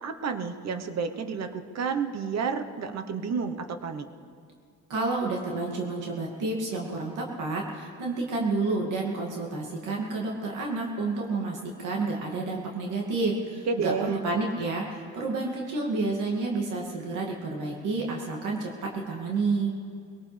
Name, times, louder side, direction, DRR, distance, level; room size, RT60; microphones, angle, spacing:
voice 1, 0.0-4.0 13.7-14.2, right 5 dB, 60° right, 7 dB, 1.1 m, -30 dB
voice 2, 4.9-19.7, right 3 dB, 85° right, -2 dB, 2.4 m, -30 dB
21.5 x 18.0 x 3.4 m, 2.3 s
cardioid pair, 90°, 30 cm